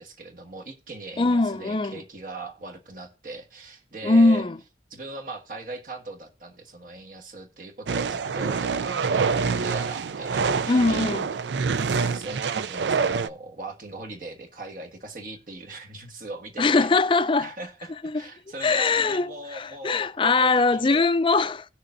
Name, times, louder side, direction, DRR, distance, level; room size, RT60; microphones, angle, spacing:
voice 1, 0.0-4.5 4.9-11.0 11.9-16.9 17.4-21.0, right 2 dB, 50° right, 1.4 m, -39 dB
voice 2, 1.2-2.0 4.0-4.6 10.7-11.3 16.6-17.5 18.1-18.2 18.6-21.6, left 3 dB, 30° left, 0.4 m, -21 dB
sound 1, 7.9-13.3, right 5 dB, 80° right, 0.4 m, -26 dB
18.0 x 6.5 x 2.6 m
head